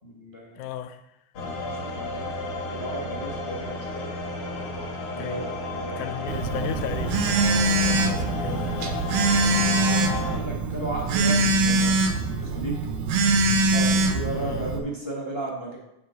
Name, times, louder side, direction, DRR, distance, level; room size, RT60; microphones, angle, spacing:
voice 1, 0.0-0.7 1.3-2.3 2.7-4.1 5.1-6.2 7.4-8.2 9.7-12.8 13.2-13.4 13.7-15.8, right 2 dB, 15° left, 0.8 m, -35 dB
voice 2, 0.6-1.0 5.2-5.5 6.0-7.2 7.7-9.0 14.3-14.7, left 11 dB, 80° left, 2.0 m, -36 dB
sound 1, 1.4-10.4, left 2 dB, 55° left, 1.7 m, -32 dB
Telephone, 6.3-14.8, right 2 dB, 90° right, 2.4 m, -23 dB
9.4 x 3.7 x 7.0 m
omnidirectional pair, 3.6 m